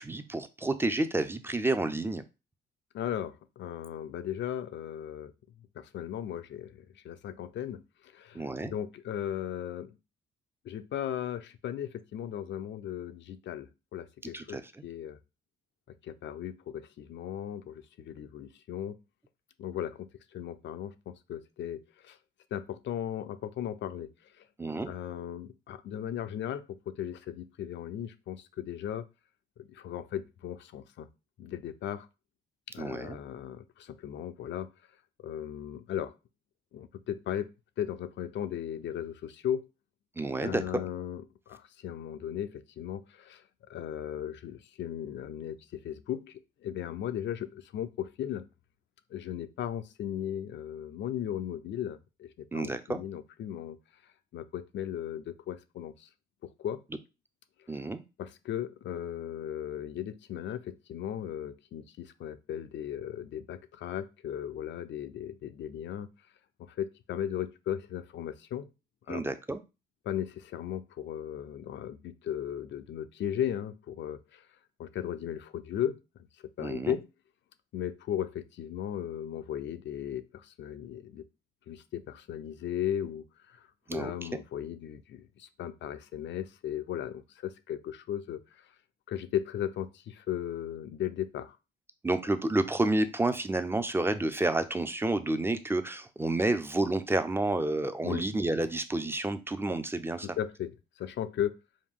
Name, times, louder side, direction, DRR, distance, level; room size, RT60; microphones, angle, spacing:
voice 1, 0.0-2.2 8.3-8.7 14.3-14.6 24.6-24.9 32.8-33.2 40.2-40.8 52.5-53.0 57.7-58.0 69.1-69.6 76.6-77.0 83.9-84.4 92.0-100.3, right 2 dB, 10° right, 10 dB, 0.5 m, -30 dB
voice 2, 2.9-5.3 5.8-7.8 8.1-10.0 10.6-15.2 16.0-19.0 19.6-22.2 22.5-24.1 24.9-29.1 29.7-31.1 31.4-32.1 32.7-34.7 35.2-36.1 36.7-37.5 37.8-39.7 40.4-43.4 43.7-46.3 46.6-48.4 49.1-53.8 54.3-56.1 56.6-56.8 58.2-66.1 66.6-68.7 69.1-69.2 70.1-74.4 74.8-76.0 76.6-77.1 77.7-81.2 81.7-83.6 83.9-88.4 89.1-91.6 98.0-98.2 100.2-100.7 101.0-101.5, left 10 dB, 65° left, 11 dB, 0.5 m, -36 dB
5.0 x 2.3 x 3.7 m, 0.28 s
cardioid pair, 90°, 20 cm